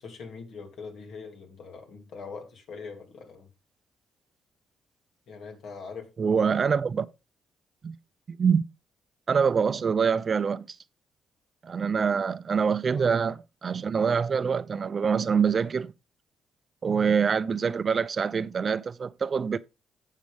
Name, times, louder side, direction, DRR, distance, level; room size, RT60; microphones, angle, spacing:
voice 1, 0.0-3.5 5.3-6.6 12.9-13.1 17.0-17.1, left 5 dB, 70° left, 3.0 m, -42 dB
voice 2, 6.2-7.1 7.8-8.0 8.3-8.6 9.3-10.8 11.6-15.9 16.8-19.6, right 6 dB, 45° right, 0.6 m, -25 dB
11.5 x 7.5 x 3.5 m
cardioid pair, 90°, 0 cm